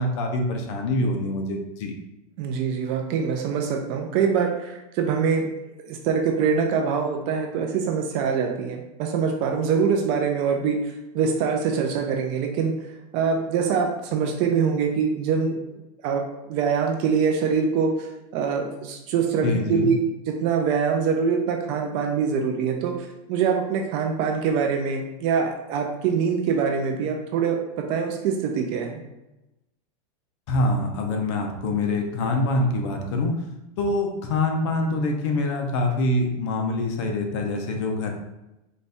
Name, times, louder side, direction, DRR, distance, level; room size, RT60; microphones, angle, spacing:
voice 1, 0.0-1.9 19.4-19.9 30.5-33.3 33.8-38.1, left 2 dB, 50° left, 3 dB, 0.7 m, -25 dB
voice 2, 2.4-5.5 5.9-12.7 13.1-15.6 16.0-16.2 16.5-17.9 18.3-20.0 20.3-29.0, right 6 dB, 30° right, 3 dB, 0.4 m, -24 dB
4.1 x 2.6 x 3.4 m, 0.95 s
supercardioid pair, 165°, 19 cm